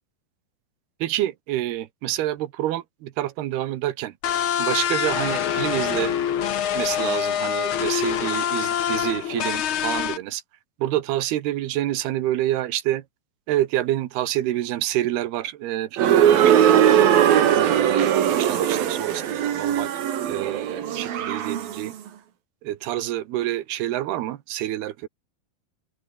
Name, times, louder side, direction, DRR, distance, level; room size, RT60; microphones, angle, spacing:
voice 1, 1.0-4.1 4.6-6.2 6.7-10.4 10.8-13.0 13.5-19.9 20.2-21.9 22.6-25.1, right 14 dB, 90° right, 3.3 m, -27 dB
sound 1, 4.2-10.2, left 9 dB, 70° left, 1.2 m, -25 dB
sound 2, 16.0-21.9, right 10 dB, 70° right, 3.9 m, -20 dB
open air
omnidirectional pair, 4.4 m